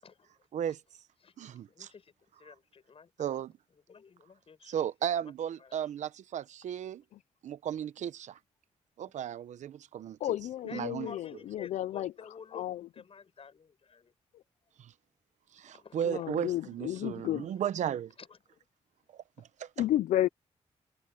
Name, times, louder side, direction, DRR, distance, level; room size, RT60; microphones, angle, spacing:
voice 1, 0.0-0.3 0.7-0.8 1.2-2.1 2.4-3.1 3.9-4.8 5.6-5.8 10.7-12.6 12.9-14.1 15.7-16.3 18.2-18.6, left 6 dB, 50° left, 7.5 m, -51 dB
voice 2, 1.4-1.9 3.2-3.5 4.6-7.0 7.4-8.4 9.0-10.2 10.7-11.1 14.8-14.9 15.5-18.1 19.1-19.7, right 9 dB, 80° right, 0.9 m, -35 dB
voice 3, 10.2-12.1 12.5-12.8 16.0-17.5 19.8-20.3, left 13 dB, 90° left, 0.4 m, -31 dB
cardioid pair, 80°, 12 cm